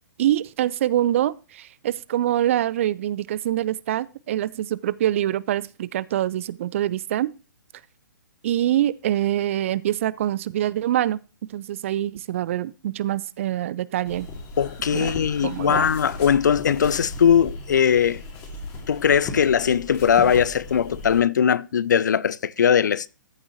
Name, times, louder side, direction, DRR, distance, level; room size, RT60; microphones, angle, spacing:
voice 1, 0.2-7.3 8.4-11.2 11.5-14.3 14.9-15.1 15.4-15.9, right 12 dB, 40° right, 0.3 m, -25 dB
sound 1, 14.0-21.2, left 2 dB, 30° left, 2.2 m, -37 dB
voice 2, 14.6-18.2 18.9-23.1, left 8 dB, 65° left, 0.4 m, -20 dB
14.0 x 6.1 x 2.9 m
figure-of-eight pair, 125°, 11 cm